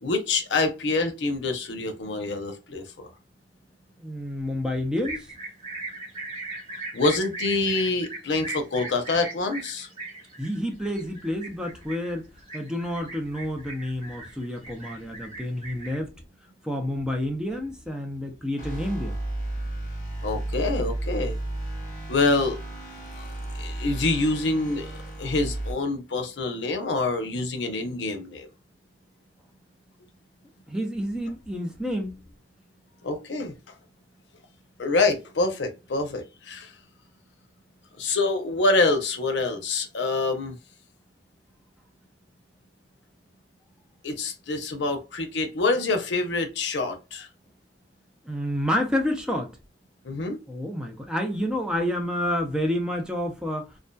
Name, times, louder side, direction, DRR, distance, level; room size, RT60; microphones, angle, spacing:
voice 1, 0.0-3.1 6.9-9.9 20.2-21.4 22.1-22.6 23.2-23.3 23.6-28.5 33.0-33.5 34.8-36.7 38.0-40.6 44.0-47.3 50.0-50.4, left 3 dB, 90° left, 0.6 m, -26 dB
voice 2, 4.0-5.3 10.4-12.2 12.5-16.1 16.6-19.2 30.7-32.2 48.2-49.5 50.5-53.7, left 1 dB, 5° right, 0.4 m, -29 dB
sound 1, 5.0-15.9, right 2 dB, 35° right, 1.1 m, -39 dB
sound 2, 18.6-25.7, right 1 dB, 45° left, 0.7 m, -33 dB
2.6 x 2.2 x 2.2 m
head